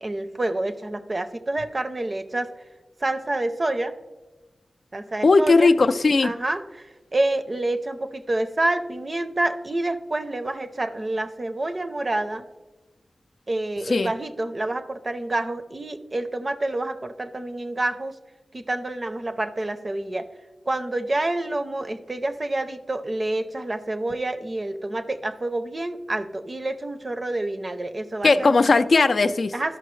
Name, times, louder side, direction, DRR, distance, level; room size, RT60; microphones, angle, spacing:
voice 1, 0.0-2.5 3.0-3.9 4.9-5.7 6.2-12.4 13.5-18.2 18.5-20.3 20.7-28.5 29.5-29.8, right 2 dB, 40° right, 9 dB, 0.5 m, -28 dB
voice 2, 5.2-6.3 13.9-14.1 28.2-29.5, left 3 dB, 65° left, 9 dB, 0.3 m, -18 dB
12.5 x 5.5 x 3.1 m, 1.2 s
wide cardioid pair, 65°, 0 cm